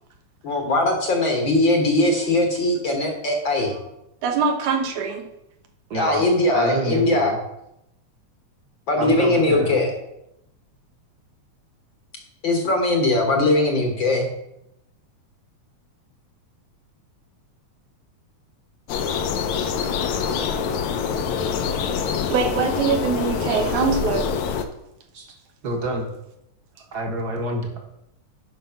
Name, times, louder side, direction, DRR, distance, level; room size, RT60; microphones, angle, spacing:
voice 1, 0.4-3.7 5.9-7.3 8.9-9.9 12.4-14.3, left 2 dB, 50° left, 2 dB, 1.6 m, -20 dB
voice 2, 4.2-5.2 22.3-24.3, right 6 dB, 80° right, 4 dB, 2.6 m, -23 dB
voice 3, 5.9-6.2 6.5-7.4 8.9-9.8 25.1-25.3 25.6-26.1 26.9-27.8, right 2 dB, 40° right, 1 dB, 1.7 m, -27 dB
sound 1, 18.9-24.6, left 6 dB, 75° left, 2.0 m, -25 dB
9.3 x 5.6 x 5.7 m, 0.83 s
omnidirectional pair, 3.4 m